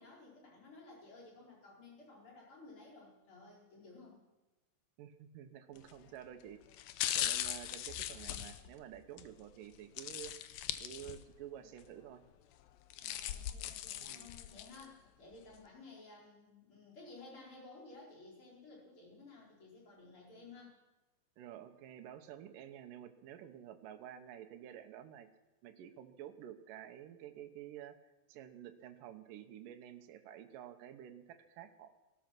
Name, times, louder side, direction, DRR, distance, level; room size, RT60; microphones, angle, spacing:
voice 1, 0.0-4.2 12.9-20.7, left 3 dB, 35° left, -3 dB, 5.2 m, -55 dB
voice 2, 5.0-6.6 7.1-10.3 10.8-12.2 14.0-14.4 21.4-25.3 25.6-28.0 28.3-31.9, right 10 dB, 75° right, 7 dB, 2.6 m, -50 dB
sound 1, 5.8-6.0 6.7-9.3 10.0-11.4 11.8-11.9 12.7-14.9 15.3-15.4, left 12 dB, 85° left, 2.6 m, -39 dB
18.0 x 12.5 x 6.0 m, 1.1 s
omnidirectional pair, 4.0 m